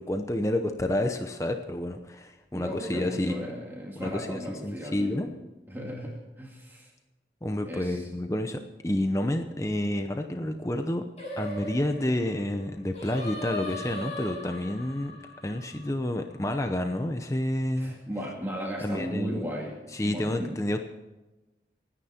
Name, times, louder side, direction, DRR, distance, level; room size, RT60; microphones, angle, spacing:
voice 1, 0.0-3.4 4.0-5.3 7.4-11.0 11.4-15.1 15.4-18.0 18.8-19.4 19.9-20.8, left 1 dB, 15° left, 6 dB, 0.8 m, -29 dB
voice 2, 2.5-5.3 5.7-6.9 7.7-8.1 17.8-20.6, equal, 10° right, -2 dB, 2.2 m, -36 dB
Singing, 11.2-16.5, left 1 dB, 35° left, 6.7 m, -39 dB
26.0 x 10.0 x 4.4 m, 1.1 s
head